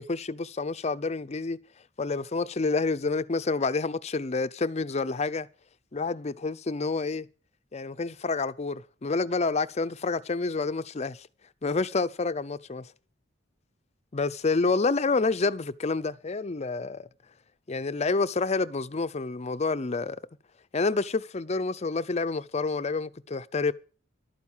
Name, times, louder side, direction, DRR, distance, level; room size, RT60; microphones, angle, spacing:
voice 1, 0.0-1.6 2.0-5.5 5.9-7.3 7.7-11.3 11.6-12.9 14.1-17.1 17.7-20.2 20.7-23.7, left 3 dB, 35° left, 0.5 m, -28 dB
12.0 x 9.4 x 7.2 m
head